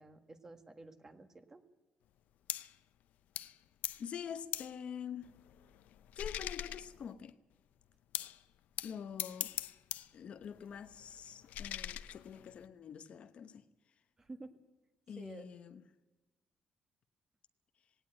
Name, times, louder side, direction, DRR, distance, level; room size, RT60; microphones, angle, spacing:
voice 1, 0.0-1.6 14.2-14.5 15.2-15.5, right 2 dB, 20° right, 1.7 m, -51 dB
sound 1, 2.5-2.8 3.4-3.6 3.8-4.1 4.5-4.8 5.2-7.3 8.1-8.4 8.8-10.1 10.4-12.7, left 12 dB, 80° left, 0.7 m, -42 dB
voice 2, 4.0-5.3 6.2-7.3 8.8-9.5 10.1-13.6 15.1-15.8, left 8 dB, 50° left, 1.0 m, -46 dB
18.5 x 18.0 x 9.0 m
cardioid pair, 155°, 3 cm